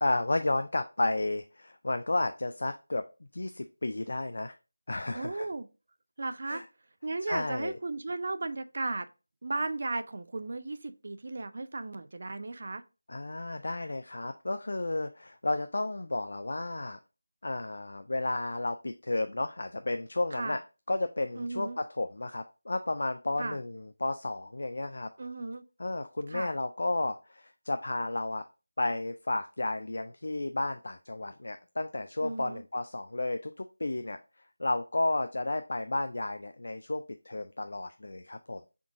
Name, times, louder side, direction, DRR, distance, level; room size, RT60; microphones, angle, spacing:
voice 1, 0.0-3.0 3.3-4.5 4.9-5.5 6.5-6.6 7.3-7.8 13.1-17.0 17.4-20.6 20.9-25.1 25.8-28.5 28.8-34.2 34.6-38.7, left 2 dB, 60° left, 0.3 m, -32 dB
voice 2, 5.1-5.7 6.2-6.6 7.0-9.1 9.4-12.8 20.3-20.6 21.4-21.8 23.4-23.6 25.2-25.6 26.3-26.5 32.2-32.6, right 2 dB, 50° right, 0.4 m, -35 dB
4.8 x 3.6 x 2.5 m
figure-of-eight pair, 170°, 0 cm